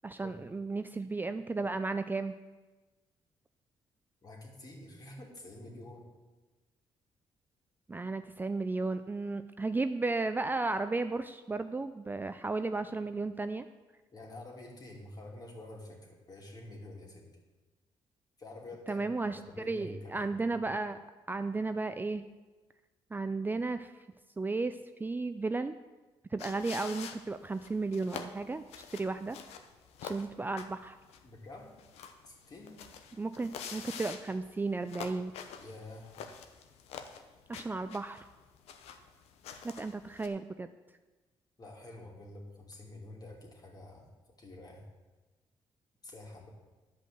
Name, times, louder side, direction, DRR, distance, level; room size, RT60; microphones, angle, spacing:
voice 1, 0.0-2.4 7.9-13.6 18.9-19.4 19.7-21.0 21.3-22.2 23.1-23.9 24.4-25.7 26.3-28.6 28.9-29.4 30.0-31.0 33.2-35.3 37.5-38.3 39.6-40.7, right 3 dB, 20° right, 9 dB, 0.4 m, -34 dB
voice 2, 4.2-6.1 14.1-17.3 18.4-20.3 31.2-31.7 32.2-32.8 35.6-36.1 41.6-44.1 44.4-44.8 46.0-46.5, left 2 dB, 40° left, 0 dB, 2.8 m, -48 dB
sound 1, 26.4-40.3, left 7 dB, 90° left, 0.8 m, -47 dB
11.0 x 5.3 x 7.7 m, 1.2 s
cardioid pair, 90°, 10 cm